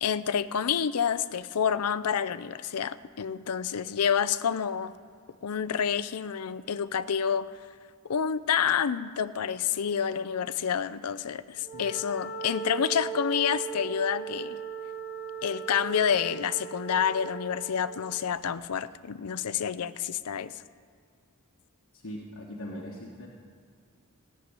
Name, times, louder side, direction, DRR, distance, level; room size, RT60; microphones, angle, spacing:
voice 1, 0.0-4.9 5.4-7.5 8.1-14.6 15.4-20.5, left 7 dB, 85° left, 14 dB, 0.5 m, -28 dB
Wind instrument woodwind instrument, 11.6-17.9, right 7 dB, 15° right, 2.2 m, -38 dB
voice 2, 21.9-23.3, equal, 60° left, -3 dB, 1.5 m, -40 dB
16.5 x 7.7 x 9.7 m, 2.1 s
head